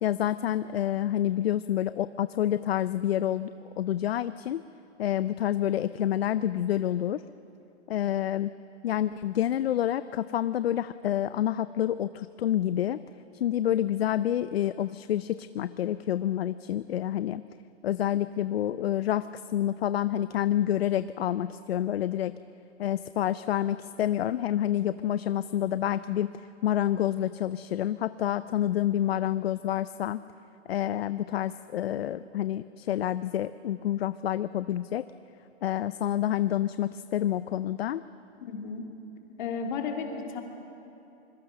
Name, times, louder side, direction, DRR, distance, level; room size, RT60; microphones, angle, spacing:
voice 1, 0.0-4.6 5.0-7.2 7.9-8.5 8.8-13.0 13.3-17.4 17.8-22.3 22.8-30.2 30.7-35.0 35.6-38.0, left 11 dB, 60° left, 14 dB, 0.6 m, -28 dB
voice 2, 38.4-38.9 39.4-40.4, left 5 dB, 40° left, 2 dB, 3.0 m, -33 dB
26.0 x 22.0 x 6.7 m, 2.9 s
hypercardioid pair, 170°, 35 cm